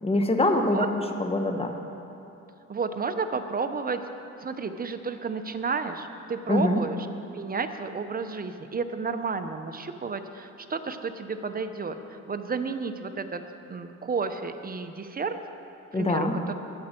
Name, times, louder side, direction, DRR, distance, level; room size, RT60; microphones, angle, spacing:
voice 1, 0.0-1.7 6.5-6.8 15.9-16.3, left 2 dB, 20° left, 4 dB, 1.2 m, -24 dB
voice 2, 2.7-4.0 4.4-7.0 7.3-13.4 13.7-15.4 15.9-16.5, right 4 dB, 30° right, 8 dB, 0.8 m, -31 dB
21.0 x 7.4 x 4.5 m, 2.8 s
cardioid pair, 90°, 30 cm